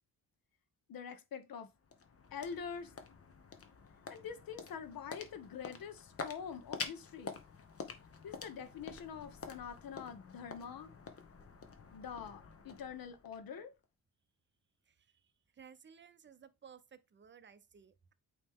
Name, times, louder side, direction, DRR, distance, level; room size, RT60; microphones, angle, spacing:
voice 1, 0.9-1.7 2.3-2.9 4.1-7.4 8.2-10.9 11.9-13.7, left 7 dB, 65° left, 1.1 m, -45 dB
sound 1, 1.4-13.8, left 5 dB, 40° left, 1.0 m, -48 dB
voice 2, 15.6-18.1, right 7 dB, 30° right, 0.6 m, -57 dB
8.6 x 3.1 x 3.6 m
cardioid pair, 130°, 37 cm